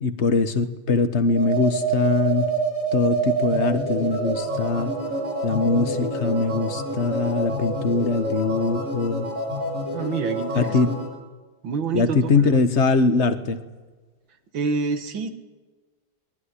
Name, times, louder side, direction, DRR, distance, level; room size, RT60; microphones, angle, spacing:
voice 1, 0.0-2.5 2.9-4.9 5.4-9.3 10.5-10.9 11.9-13.6, left 4 dB, 40° left, 9 dB, 1.5 m, -22 dB
sound 1, 1.3-11.1, right 2 dB, 45° right, 6.3 m, -27 dB
voice 2, 9.9-10.8 11.6-12.5 14.5-15.3, right 5 dB, 80° right, 8 dB, 2.4 m, -27 dB
20.5 x 20.5 x 9.9 m, 1.3 s
omnidirectional pair, 2.1 m